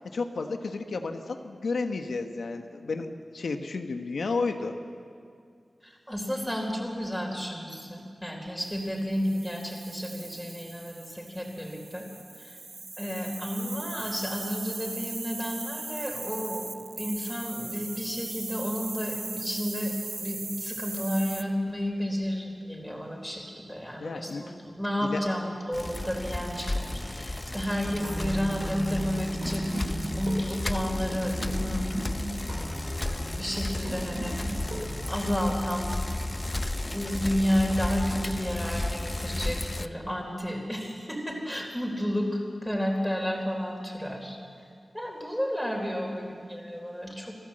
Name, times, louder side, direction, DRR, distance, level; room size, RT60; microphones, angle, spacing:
voice 1, 0.1-4.7 24.0-24.5 25.0-25.2, left 4 dB, 90° left, 5 dB, 1.2 m, -32 dB
voice 2, 5.8-12.1 12.3-12.6 13.0-32.0 32.6-32.7 33.4-34.6 35.1-36.2 36.5-44.4 44.9-47.4, equal, ahead, 1 dB, 4.1 m, -31 dB
sound 1, 8.6-21.4, right 3 dB, 55° right, 0.9 m, -39 dB
Bicycle, 25.7-39.9, left 1 dB, 20° left, 0.6 m, -33 dB
sound 2, 27.8-35.1, right 1 dB, 85° right, 7.0 m, -37 dB
26.0 x 15.0 x 7.7 m, 2.3 s
wide cardioid pair, 100°, 0 cm